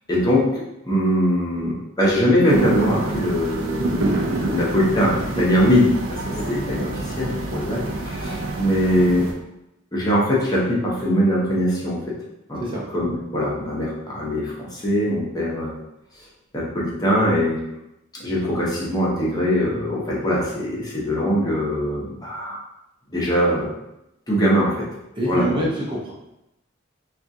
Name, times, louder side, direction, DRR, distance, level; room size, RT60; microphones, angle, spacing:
voice 1, 0.1-4.1 4.4-6.2 6.5-9.3 9.9-12.0 12.5-12.6 12.9-15.7 16.5-17.6 18.2-22.6 23.1-23.7 24.3-24.8 25.3-25.6, equal, 20° left, -6 dB, 0.7 m, -21 dB
sound 1, 2.5-9.3, right 2 dB, 75° right, 0.5 m, -27 dB
voice 2, 25.2-26.1, right 1 dB, 25° right, -4 dB, 0.5 m, -26 dB
3.5 x 2.4 x 2.6 m, 0.89 s
head